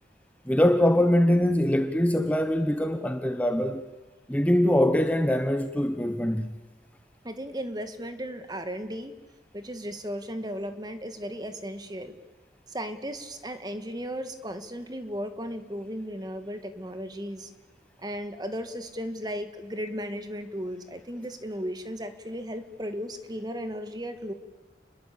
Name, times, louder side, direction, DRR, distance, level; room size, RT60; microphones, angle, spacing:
voice 1, 0.5-3.8 4.3-6.6, left 1 dB, 10° left, 1.0 m, -23 dB
voice 2, 7.2-9.1 9.5-12.1 12.7-17.5 18.0-24.3, equal, 25° right, 1.9 m, -35 dB
29.0 x 21.5 x 8.6 m
head